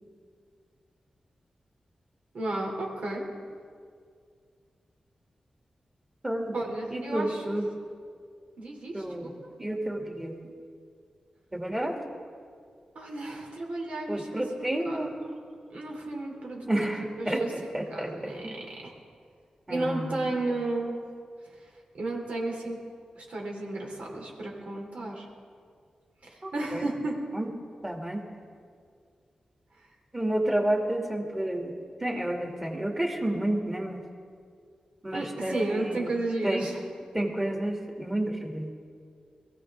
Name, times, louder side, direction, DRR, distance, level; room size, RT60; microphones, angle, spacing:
voice 1, 2.3-3.2 6.5-7.4 8.6-9.3 12.9-15.1 15.7-17.5 17.9-18.4 18.8-18.9 19.7-21.0 21.6-21.7 21.9-22.8 23.1-25.3 26.2-27.2 29.8-29.9 35.1-36.8, right 2 dB, 70° right, -1 dB, 3.2 m, -33 dB
voice 2, 6.2-6.5 6.9-7.7 8.9-9.3 9.6-10.4 11.5-11.9 14.1-15.1 16.7-17.4 17.7-18.6 19.7-20.2 26.4-26.8 27.3-27.5 27.8-28.2 30.1-34.0 35.0-36.1 36.4-36.7 37.1-38.7, right 1 dB, 15° right, 0 dB, 2.5 m, -30 dB
22.5 x 15.5 x 3.7 m, 2.2 s
wide cardioid pair, 95°, 2 cm